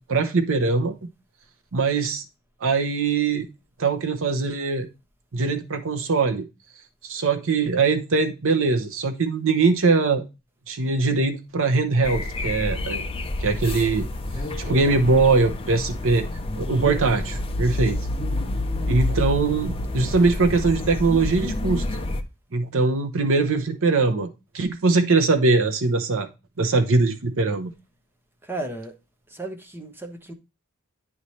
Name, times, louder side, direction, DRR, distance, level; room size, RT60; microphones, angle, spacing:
voice 1, 0.1-0.9 1.7-2.2 2.6-3.5 3.8-4.9 5.3-6.4 7.0-10.2 10.7-13.0 13.4-14.1 14.6-16.3 16.6-18.0 18.9-21.8 22.5-24.3 24.5-26.3 26.6-27.7, right 3 dB, 65° right, 0.8 m, -21 dB
sound 1, 12.0-22.2, left 2 dB, 25° left, 0.6 m, -28 dB
voice 2, 14.6-15.0 28.4-28.9 29.3-30.3, right 2 dB, 10° right, 0.9 m, -34 dB
9.6 x 3.2 x 4.1 m
head